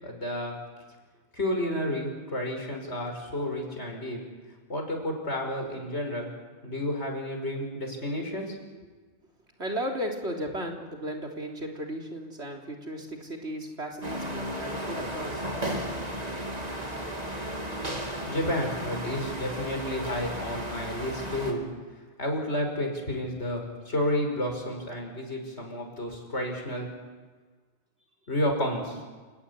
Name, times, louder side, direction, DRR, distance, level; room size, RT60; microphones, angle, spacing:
voice 1, 0.0-0.5 1.3-4.2 4.7-6.3 6.6-8.5 18.3-21.7 22.2-26.9 28.3-29.0, left 1 dB, 85° left, 2 dB, 5.9 m, -31 dB
voice 2, 9.6-15.5, equal, 80° right, 1 dB, 3.8 m, -35 dB
sound 1, 14.0-21.5, right 1 dB, 35° right, 3.4 m, -34 dB
29.0 x 17.5 x 9.9 m, 1.4 s
omnidirectional pair, 1.1 m